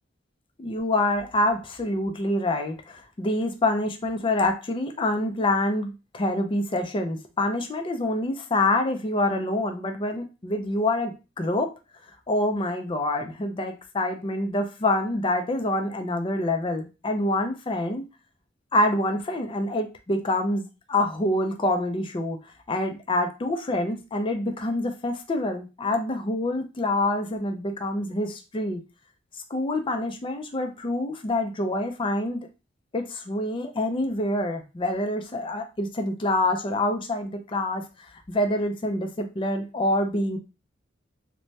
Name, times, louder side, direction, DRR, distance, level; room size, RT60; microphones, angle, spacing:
voice 1, 0.6-11.7 12.3-18.0 18.7-22.4 22.7-28.8 29.5-32.5 32.9-37.8 38.3-40.4, left 1 dB, 25° left, 5 dB, 0.4 m, -26 dB
2.7 x 2.1 x 3.2 m, 0.28 s
head